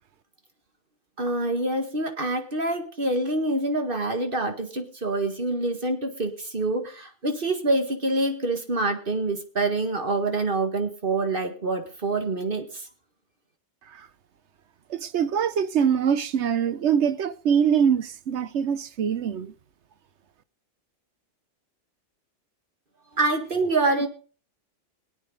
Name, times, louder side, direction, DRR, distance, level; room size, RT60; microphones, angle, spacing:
voice 1, 1.2-12.9 23.1-24.1, right 2 dB, 45° right, 2.0 m, -26 dB
voice 2, 14.9-19.5, right 7 dB, 65° right, 1.1 m, -24 dB
23.5 x 8.8 x 4.0 m
omnidirectional pair, 1.3 m